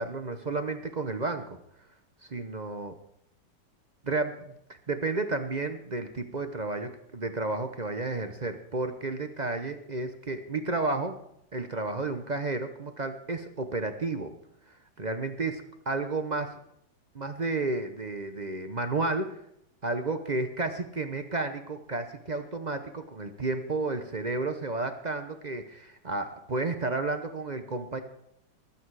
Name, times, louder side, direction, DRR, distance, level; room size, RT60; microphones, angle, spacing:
voice 1, 0.0-1.6 2.2-3.0 4.0-4.5 4.9-11.2 11.5-14.3 14.7-16.6 17.1-19.4 19.8-28.0, right 3 dB, 40° right, 8 dB, 0.6 m, -32 dB
20.0 x 8.5 x 4.8 m, 0.76 s
omnidirectional pair, 2.0 m